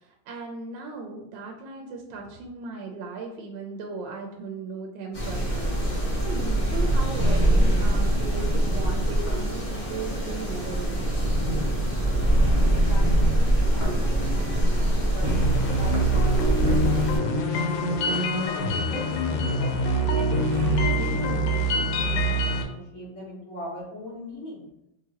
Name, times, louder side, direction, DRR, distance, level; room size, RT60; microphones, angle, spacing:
voice 1, 0.0-11.1, right 4 dB, 80° right, 2 dB, 1.3 m, -37 dB
sound 1, 5.1-17.2, right 1 dB, 30° left, 0.7 m, -23 dB
voice 2, 12.7-19.7 20.1-20.4 20.6-24.7, left 1 dB, 45° left, -5 dB, 1.5 m, -41 dB
sound 2, 15.2-22.6, right 1 dB, 90° left, 1.4 m, -25 dB
sound 3, 15.2-20.9, right 2 dB, 60° right, 1.0 m, -36 dB
3.8 x 3.1 x 2.9 m, 0.82 s
omnidirectional pair, 2.1 m